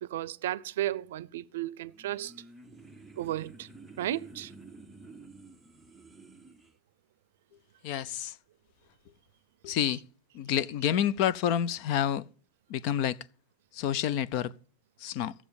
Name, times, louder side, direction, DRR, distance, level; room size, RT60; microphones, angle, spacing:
voice 1, 0.0-2.3 3.2-3.7 4.0-4.5, right 13 dB, 90° right, 0.5 m, -34 dB
sound 1, 1.8-6.7, right 3 dB, 5° right, 0.7 m, -51 dB
voice 2, 7.8-8.4 9.6-10.0 10.3-12.2 12.7-13.2 13.7-14.5 15.0-15.3, left 10 dB, 40° left, 0.5 m, -28 dB
15.0 x 7.2 x 6.9 m
supercardioid pair, 180°, 0 cm